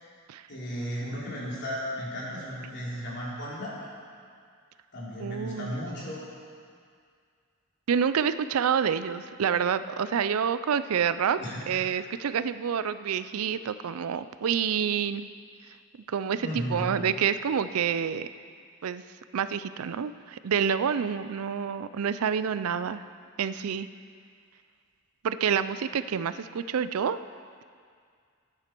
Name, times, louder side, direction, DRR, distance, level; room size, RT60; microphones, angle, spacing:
voice 1, 0.5-3.7 4.9-6.3 11.4-11.8 16.4-17.1, equal, 55° left, -6 dB, 3.3 m, -35 dB
voice 2, 5.2-5.8 7.9-11.4 11.7-15.2 16.1-18.3 18.8-19.0 19.3-23.0 23.4-23.9 25.2-27.2, right 7 dB, 85° right, 14 dB, 0.4 m, -28 dB
14.0 x 9.8 x 4.5 m, 2.1 s
head